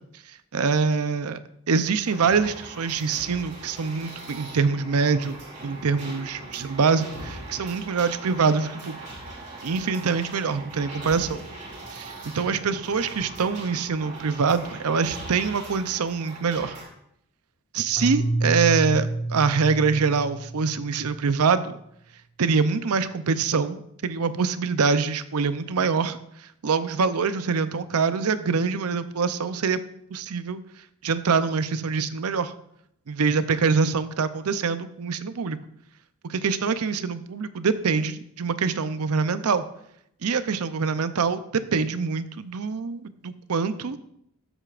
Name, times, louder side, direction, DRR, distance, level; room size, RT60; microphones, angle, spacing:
voice 1, 0.5-1.4 1.7-9.0 9.6-11.4 11.9-16.8 17.7-21.7 22.4-26.2 26.6-29.8 30.1-30.6 31.0-32.5 33.1-35.6 36.2-39.6 40.2-44.0, right 5 dB, 85° right, 12 dB, 0.6 m, -24 dB
sound 1, 2.1-16.8, right 2 dB, 30° right, 2.5 m, -40 dB
Keyboard (musical), 18.0-21.1, right 2 dB, 80° left, 2.1 m, -29 dB
13.5 x 8.1 x 2.5 m, 0.73 s
head